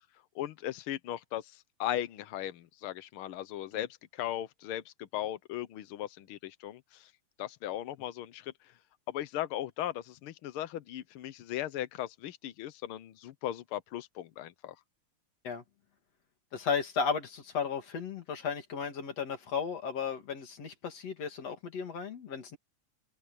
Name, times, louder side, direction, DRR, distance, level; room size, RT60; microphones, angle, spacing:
voice 1, 0.3-7.1 7.4-8.5 9.1-14.7, left 12 dB, 80° left, 1.2 m, -37 dB
voice 2, 16.5-22.6, left 6 dB, 55° left, 3.5 m, -34 dB
open air
omnidirectional pair, 3.4 m